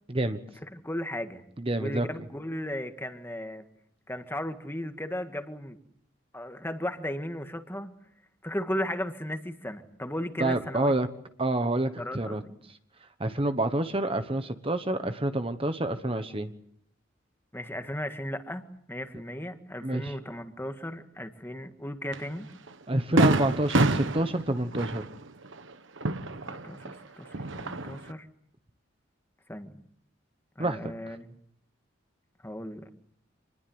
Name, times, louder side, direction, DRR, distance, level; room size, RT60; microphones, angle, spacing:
voice 1, 0.1-0.4 1.6-2.1 10.4-11.1 11.4-12.4 12.7-12.8 13.2-16.5 19.8-20.2 22.9-25.0 30.6-31.2, right 1 dB, 25° right, 9 dB, 1.2 m, -28 dB
voice 2, 0.6-1.4 1.8-3.6 4.1-5.8 6.3-7.9 8.4-10.9 12.0-12.6 17.5-22.5 26.4-28.3 29.5-29.7 30.6-31.4 32.4-32.8, left 1 dB, 10° left, 7 dB, 1.7 m, -36 dB
Fireworks, 22.1-22.3 22.7-22.8 23.2-26.9 27.3-28.1, right 2 dB, 70° right, 1.3 m, -27 dB
27.0 x 20.5 x 7.9 m, 0.67 s
head